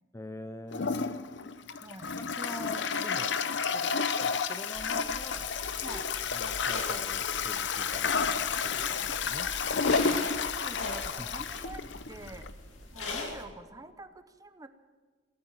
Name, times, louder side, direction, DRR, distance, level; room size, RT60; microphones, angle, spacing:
voice 1, 0.1-1.1 2.2-3.4 3.7-5.5 6.3-9.5 11.2-11.3, left 1 dB, 15° left, 9 dB, 0.5 m, -45 dB
Toilet flush, 0.7-12.5, left 5 dB, 65° left, 0.7 m, -31 dB
voice 2, 1.8-2.1 5.8-6.1 9.8-10.0 10.4-12.5 12.9-14.7, right 2 dB, 20° right, 10 dB, 0.8 m, -47 dB
sound 1, 4.7-13.4, left 3 dB, 85° left, 2.4 m, -41 dB
17.5 x 8.9 x 8.9 m, 1.4 s
head